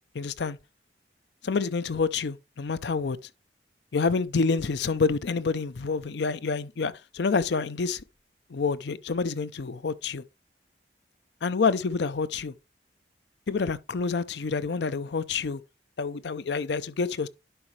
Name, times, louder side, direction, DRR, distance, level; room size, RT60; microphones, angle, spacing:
voice 1, 0.1-0.6 1.4-3.2 3.9-8.0 8.5-10.2 11.4-12.5 13.5-15.6 16.0-17.3, left 4 dB, 70° left, 0.5 m, -28 dB
11.5 x 4.9 x 3.2 m
head